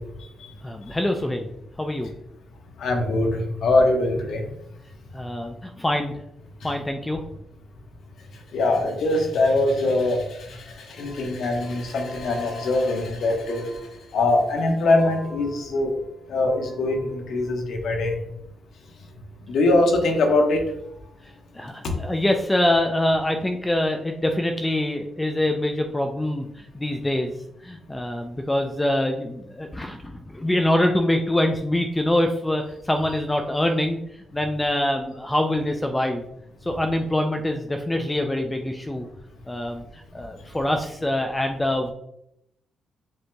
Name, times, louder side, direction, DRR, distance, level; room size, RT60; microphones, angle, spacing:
voice 1, 0.6-1.5 1.8-2.1 5.1-6.1 6.6-7.2 21.5-26.4 26.7-27.3 27.6-34.0 34.3-36.2 36.7-39.1 39.5-39.8 40.1-41.9, left 1 dB, 10° left, 4 dB, 0.4 m, -24 dB
voice 2, 2.8-4.4 8.5-10.2 11.0-13.7 14.1-15.9 16.3-18.1 19.5-20.6, left 2 dB, 70° left, 2 dB, 1.0 m, -22 dB
7.7 x 2.9 x 2.2 m, 0.78 s
cardioid pair, 125°, 0 cm